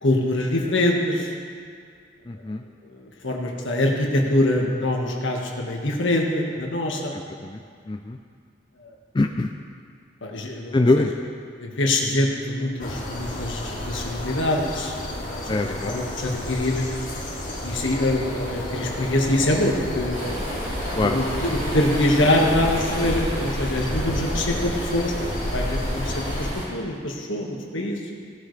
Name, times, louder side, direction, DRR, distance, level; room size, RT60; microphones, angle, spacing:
voice 1, 0.0-1.3 2.9-7.2 8.8-8.9 10.2-11.0 11.6-16.9 17.6-20.4 21.0-28.0, left 1 dB, 75° left, 0 dB, 1.7 m, -24 dB
voice 2, 2.3-2.6 7.1-7.6 7.9-8.2 9.1-9.5 10.7-11.1 15.5-15.9 21.0-21.2, left 2 dB, 20° left, 4 dB, 0.4 m, -23 dB
sound 1, 12.8-26.5, left 1 dB, 40° left, 2.4 m, -30 dB
sound 2, 20.1-26.7, right 1 dB, 30° right, 2.8 m, -34 dB
16.5 x 11.0 x 3.3 m, 2.1 s
head